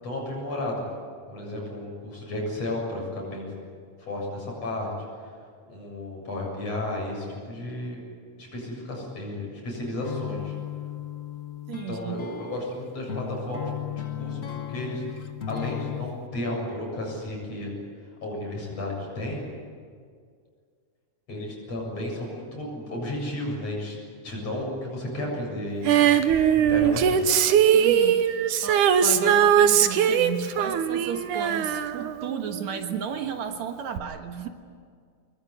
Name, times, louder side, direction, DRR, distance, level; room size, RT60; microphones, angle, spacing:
voice 1, 0.0-0.9 1.3-3.5 4.0-4.9 5.2-5.3 5.7-8.0 8.4-10.6 11.9-15.0 15.5-17.8 18.2-19.4 21.3-26.2 26.5-27.4, left 1 dB, 55° left, -1 dB, 8.7 m, -33 dB
sound 1, 10.0-16.2, left 10 dB, 85° left, 0.7 m, -35 dB
voice 2, 11.7-12.2 27.7-34.5, right 7 dB, 70° right, 5 dB, 2.7 m, -34 dB
Female singing, 25.9-32.8 34.0-34.1, right 8 dB, 85° right, 2.6 m, -21 dB
25.0 x 22.0 x 9.8 m, 2.1 s
omnidirectional pair, 3.4 m